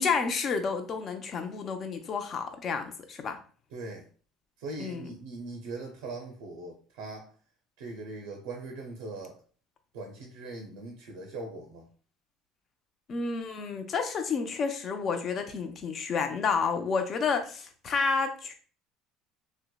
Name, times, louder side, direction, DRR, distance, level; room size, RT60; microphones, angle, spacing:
voice 1, 0.0-3.4 4.8-5.1 13.1-18.5, left 5 dB, 45° left, 6 dB, 0.5 m, -30 dB
voice 2, 3.7-4.1 4.6-7.3 7.8-9.4 9.9-11.9, right 3 dB, 80° right, 3 dB, 0.5 m, -40 dB
2.7 x 2.0 x 2.2 m, 0.42 s
hypercardioid pair, 80°, 0 cm